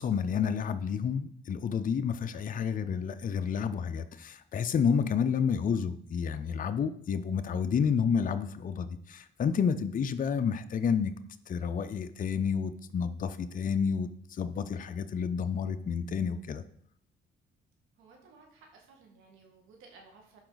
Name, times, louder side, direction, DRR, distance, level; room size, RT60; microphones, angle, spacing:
voice 1, 0.0-11.1 11.5-16.6, left 6 dB, 45° left, 9 dB, 0.6 m, -30 dB
voice 2, 18.0-20.4, right 4 dB, 90° right, 1 dB, 1.8 m, -56 dB
11.5 x 4.9 x 4.0 m, 0.65 s
cardioid pair, 90°, 20 cm